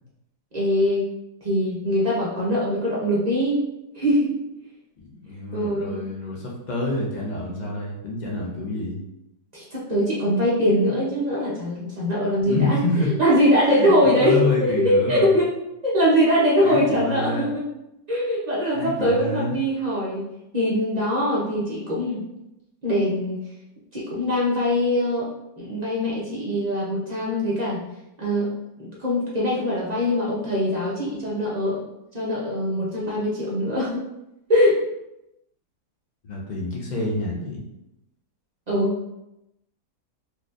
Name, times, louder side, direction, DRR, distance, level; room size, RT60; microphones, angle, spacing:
voice 1, 0.5-1.1 1.4-3.6 3.9-4.4 5.5-6.0 9.5-12.8 13.2-14.4 14.8-15.5 15.8-17.6 18.1-20.2 20.5-22.2 22.8-23.4 23.9-27.8 28.2-28.5 28.8-31.8 32.1-34.1 34.5-34.8 38.7-39.2, equal, 55° right, -6 dB, 0.4 m, -22 dB
voice 2, 5.0-9.0 12.4-13.1 13.7-15.4 16.6-17.5 18.7-19.5 36.2-37.6, left 2 dB, 65° left, -2 dB, 0.4 m, -27 dB
4.1 x 3.0 x 2.5 m, 0.89 s
omnidirectional pair, 1.8 m